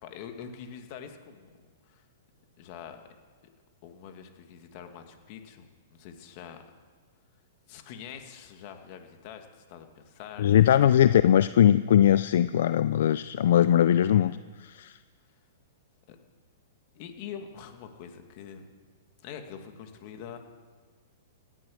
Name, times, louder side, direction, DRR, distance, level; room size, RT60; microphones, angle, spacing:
voice 1, 0.0-1.5 1.9-2.1 2.6-3.1 3.8-6.6 7.7-10.6 16.1-16.2 17.0-18.7 19.2-20.4, left 8 dB, 45° left, 6 dB, 2.1 m, -44 dB
voice 2, 10.4-15.0, left 10 dB, 70° left, 14 dB, 0.4 m, -21 dB
17.0 x 11.0 x 6.5 m, 1.5 s
hypercardioid pair, 140°, 0 cm